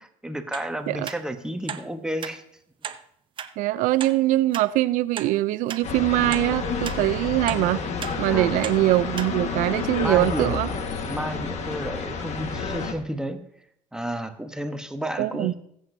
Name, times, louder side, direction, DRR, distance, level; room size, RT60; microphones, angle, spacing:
voice 1, 0.0-2.4 8.3-8.7 10.0-10.6 11.1-13.4 13.9-15.6, right 1 dB, 5° right, 6 dB, 0.9 m, -31 dB
sound 1, 0.5-0.7 1.1-1.2 1.7-1.8 2.2-2.4 2.8-3.0 3.4-3.5 4.0-4.1 4.5-4.7 5.2-5.3 5.7-5.8 6.3-6.5 6.8-7.0 7.5-7.6 8.0-8.2 8.6-8.8 9.2-9.3 9.8-9.9, right 8 dB, 40° right, 0.7 m, -34 dB
voice 2, 3.6-7.8 8.2-10.7 15.2-15.5, right 16 dB, 85° right, 16 dB, 0.4 m, -22 dB
sound 2, 5.8-12.9, left 5 dB, 60° left, 1.5 m, -30 dB
22.5 x 7.9 x 2.7 m, 0.72 s
cardioid pair, 125°, 13 cm